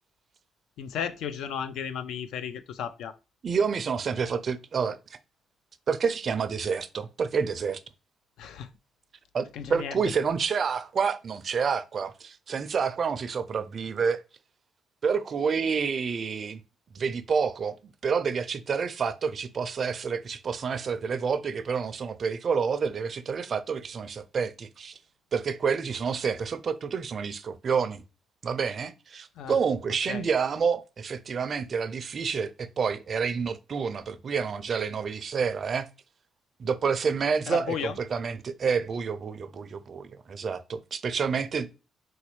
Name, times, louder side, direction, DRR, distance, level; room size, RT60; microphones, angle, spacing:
voice 1, 0.8-3.1 8.4-8.7 9.5-10.0 29.4-29.6 30.1-30.3 37.5-38.0, left 8 dB, 80° left, 0.4 m, -34 dB
voice 2, 3.4-5.0 5.9-7.8 9.3-14.2 15.0-16.6 16.9-17.7 18.0-25.0 25.3-28.0 28.4-35.9 36.6-41.8, right 6 dB, 50° right, 0.4 m, -28 dB
4.1 x 2.2 x 3.0 m
cardioid pair, 90°, 0 cm